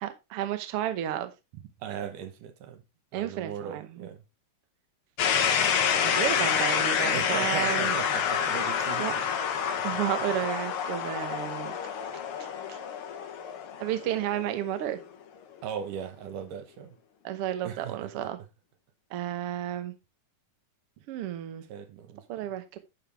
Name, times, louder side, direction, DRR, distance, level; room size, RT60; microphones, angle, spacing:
voice 1, 0.0-1.3 3.1-4.1 6.0-7.9 9.0-9.1 9.8-11.8 12.7-12.8 13.8-15.0 17.2-18.4 19.1-19.9 21.1-21.6 22.3-22.8, right 12 dB, 65° right, 1.6 m, -32 dB
voice 2, 1.8-2.8 3.1-4.2 7.1-9.3 9.6-9.7 15.6-17.0 17.6-18.3 21.7-22.2, right 8 dB, 85° right, 2.7 m, -38 dB
sound 1, 5.2-15.0, left 7 dB, 60° left, 1.5 m, -28 dB
11.0 x 5.6 x 3.4 m
omnidirectional pair, 3.6 m